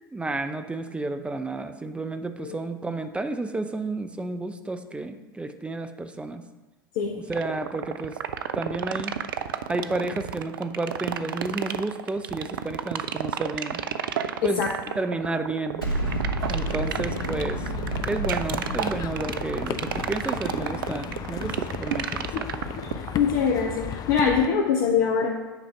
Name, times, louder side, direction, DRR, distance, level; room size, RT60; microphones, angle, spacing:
voice 1, 0.1-6.4 7.1-8.2 8.5-9.1 9.7-13.8 14.4-14.6 15.0-15.8 16.5-17.7 18.1-22.5, right 2 dB, 10° right, 8 dB, 0.6 m, -31 dB
sound 1, 7.3-23.3, right 10 dB, 70° right, 0.5 m, -30 dB
Explosion, 15.8-21.0, right 1 dB, 85° left, 1.9 m, -31 dB
sound 2, 16.4-24.5, left 9 dB, 35° left, 0.5 m, -35 dB
voice 2, 23.1-25.3, left 6 dB, 55° left, 1 dB, 0.9 m, -23 dB
8.9 x 4.2 x 5.8 m, 1.2 s
figure-of-eight pair, 80°, 12 cm